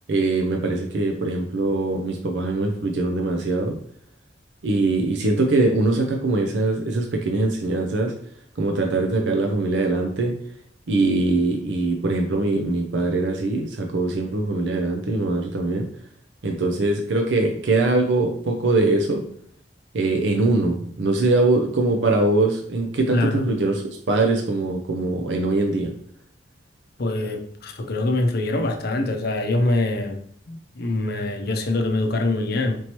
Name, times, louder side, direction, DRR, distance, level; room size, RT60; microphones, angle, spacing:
voice 1, 0.1-3.8 4.6-8.1 8.6-10.3 10.9-15.9 16.4-19.2 19.9-25.9, right 2 dB, 70° right, 2 dB, 0.5 m, -22 dB
voice 2, 23.1-23.4 27.0-30.2 30.5-32.8, left 2 dB, 55° left, 4 dB, 0.6 m, -24 dB
4.4 x 2.9 x 3.0 m, 0.63 s
head